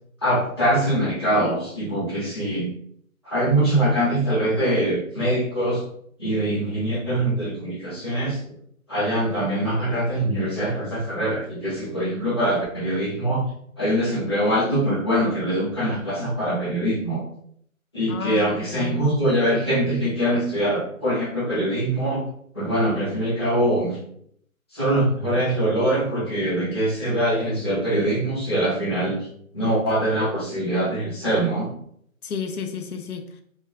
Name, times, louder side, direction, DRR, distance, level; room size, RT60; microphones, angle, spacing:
voice 1, 0.2-2.7 3.2-5.8 6.2-8.5 8.9-13.4 13.8-17.2 17.9-22.3 22.5-24.0 24.7-29.3 29.5-31.7, right 1 dB, 20° left, -9 dB, 0.5 m, -23 dB
voice 2, 18.1-18.9 32.2-33.4, left 6 dB, 90° left, 7 dB, 0.6 m, -31 dB
2.3 x 2.2 x 3.5 m, 0.66 s
hypercardioid pair, 160°, 42 cm